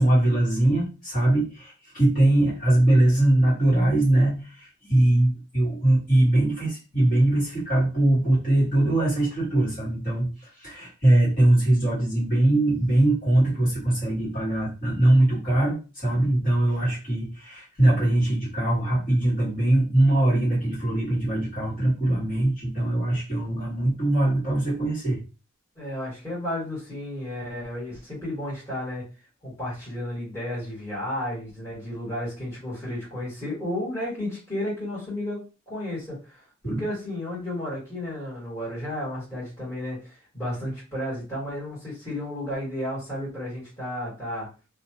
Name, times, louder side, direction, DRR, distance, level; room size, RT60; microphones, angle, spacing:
voice 1, 0.0-25.2 36.6-36.8, right 1 dB, 40° left, -8 dB, 1.5 m, -22 dB
voice 2, 25.8-29.0 29.4-44.5, left 1 dB, 15° left, -9 dB, 1.5 m, -33 dB
2.6 x 2.3 x 2.8 m, 0.32 s
head